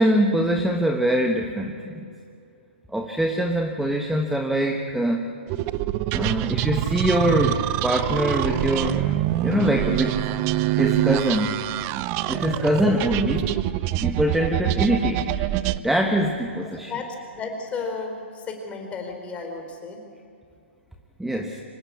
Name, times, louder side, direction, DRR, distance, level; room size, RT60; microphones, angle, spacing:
voice 1, 0.0-2.0 2.9-5.3 6.1-9.1 9.4-10.3 10.8-11.5 12.3-13.5 14.0-15.4 15.8-16.9 21.2-21.6, right 1 dB, 5° right, 3 dB, 1.3 m, -23 dB
sound 1, 5.5-15.8, right 15 dB, 35° right, 0.7 m, -25 dB
voice 2, 14.2-14.7 16.5-20.0, left 4 dB, 20° left, 4 dB, 4.3 m, -34 dB
25.5 x 17.0 x 8.6 m, 2.4 s
hypercardioid pair, 135°, 7 cm